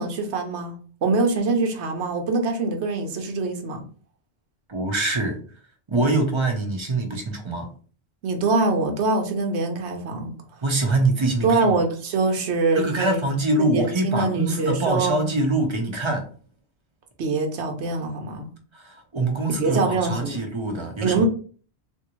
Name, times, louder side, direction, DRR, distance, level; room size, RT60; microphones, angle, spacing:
voice 1, 0.0-3.8 8.2-10.3 11.4-13.2 13.6-15.3 17.2-18.5 19.6-20.4 21.0-21.3, right 3 dB, 85° right, 3 dB, 1.0 m, -24 dB
voice 2, 4.7-5.4 5.9-7.7 10.6-11.8 12.7-16.3 18.7-21.2, right 2 dB, 30° right, 3 dB, 0.7 m, -24 dB
3.5 x 2.6 x 3.0 m, 0.41 s
omnidirectional pair, 1.1 m